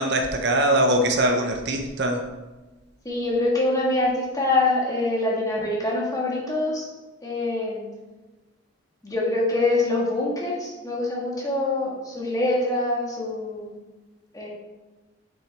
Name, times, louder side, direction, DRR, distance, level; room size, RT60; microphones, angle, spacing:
voice 1, 0.0-2.2, right 1 dB, 55° right, 4 dB, 0.7 m, -22 dB
voice 2, 3.0-6.8 7.2-7.9 9.0-13.8 14.3-14.5, left 2 dB, 20° left, -3 dB, 1.6 m, -24 dB
7.7 x 6.1 x 3.4 m, 1.2 s
head